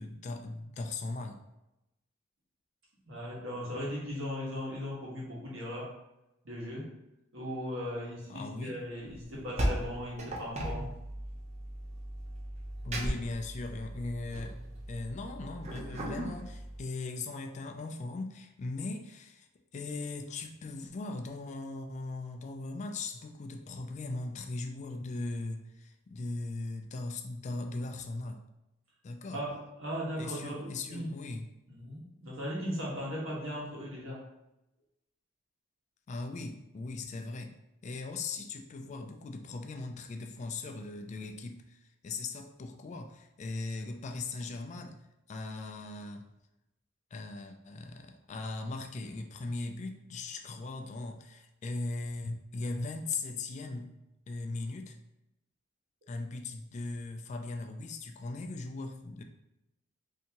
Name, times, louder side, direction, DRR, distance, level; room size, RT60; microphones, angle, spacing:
voice 1, 0.0-1.4 8.3-8.8 12.8-14.6 14.9-19.5 19.7-28.4 29.0-29.4 30.2-31.5 36.1-37.5 37.8-45.0 45.3-46.3 47.1-53.9 54.3-55.0 56.1-59.2, left 3 dB, 35° left, 5 dB, 0.3 m, -39 dB
voice 2, 3.1-5.9 6.4-6.9 7.3-10.9 29.3-31.1 31.7-34.2, equal, 70° right, -5 dB, 1.2 m, -38 dB
sound 1, 9.1-16.8, equal, 35° right, 0.6 m, -37 dB
3.3 x 2.8 x 2.8 m, 0.91 s
head